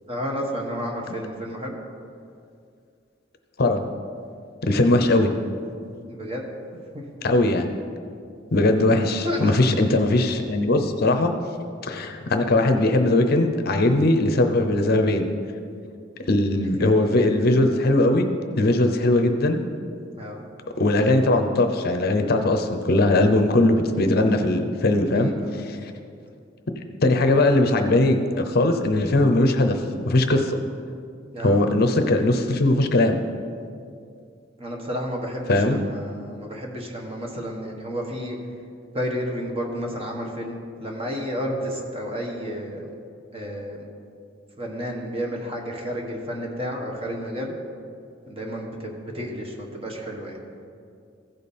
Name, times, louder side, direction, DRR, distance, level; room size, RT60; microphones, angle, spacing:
voice 1, 0.1-1.7 6.1-6.4 6.9-7.0 9.2-9.5 16.5-17.4 20.2-20.4 25.1-25.6 31.3-31.7 34.6-38.4 38.9-42.8 43.3-43.8 44.6-47.5 48.3-50.4, equal, 30° right, 0 dB, 1.2 m, -31 dB
voice 2, 4.6-5.3 7.2-7.7 8.5-11.3 11.8-15.2 16.3-18.3 18.6-19.6 20.8-25.3 25.6-25.8 27.0-29.8 30.0-30.6 31.4-33.2 35.5-35.8, left 2 dB, 50° left, 6 dB, 0.6 m, -20 dB
15.0 x 5.2 x 4.2 m, 2.4 s
head